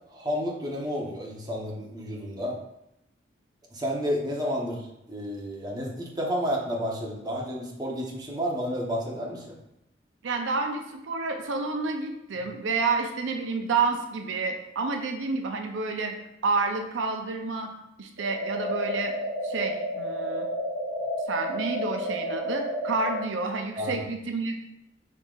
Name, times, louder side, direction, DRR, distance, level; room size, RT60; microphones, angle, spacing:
voice 1, 0.1-2.6 3.7-9.6 23.8-24.0, equal, 20° right, -2 dB, 0.8 m, -31 dB
voice 2, 10.2-16.1 16.4-17.7 18.0-19.1 19.4-20.5 21.3-24.7, right 4 dB, 90° right, 4 dB, 0.5 m, -29 dB
sound 1, 18.2-23.2, equal, 65° right, 1.3 m, -31 dB
5.3 x 3.7 x 2.4 m, 0.85 s
head